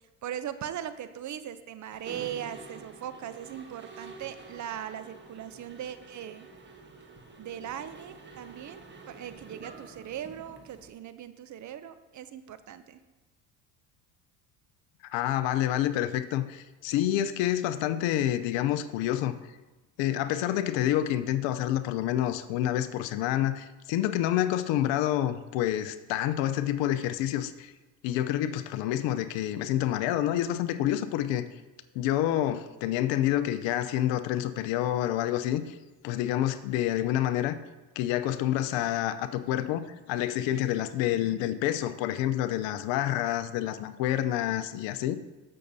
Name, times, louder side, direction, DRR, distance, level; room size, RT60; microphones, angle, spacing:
voice 1, 0.2-6.5 7.4-13.0, right 10 dB, 35° right, 12 dB, 0.6 m, -39 dB
Mechanisms, 1.9-10.9, right 4 dB, 20° right, 1.3 m, -48 dB
voice 2, 15.1-19.3 20.0-27.7 28.0-31.4 31.9-35.8 36.0-37.6 38.0-45.2, left 12 dB, 65° left, 12 dB, 0.7 m, -28 dB
15.0 x 6.5 x 2.7 m, 1.1 s
hypercardioid pair, 75°, 49 cm